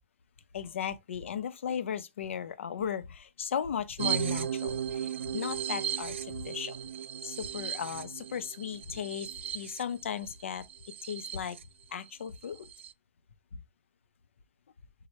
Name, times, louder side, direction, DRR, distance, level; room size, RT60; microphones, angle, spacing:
voice 1, 0.5-6.8 7.2-9.3 9.5-10.7 11.0-11.6 11.9-12.7 13.5-13.6, left 8 dB, 75° left, 0.6 m, -36 dB
sound 1, 4.0-11.6 12.1-12.2 12.4-12.9, right 9 dB, 65° right, 0.4 m, -36 dB
4.8 x 2.2 x 4.1 m
hypercardioid pair, 180°, 7 cm